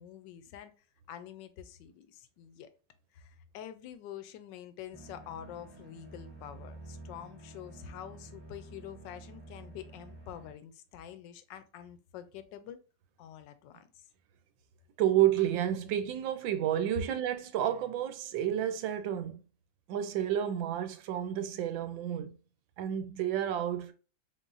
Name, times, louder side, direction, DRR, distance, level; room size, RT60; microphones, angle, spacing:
voice 1, 0.0-2.7 3.1-12.8 13.2-14.0, left 10 dB, 80° left, 1.3 m, -47 dB
sound 1, 4.9-10.5, right 2 dB, 25° right, 1.2 m, -50 dB
voice 2, 15.0-19.4 19.9-22.3 22.8-23.9, right 11 dB, 90° right, 1.4 m, -30 dB
4.0 x 3.8 x 2.4 m
omnidirectional pair, 2.0 m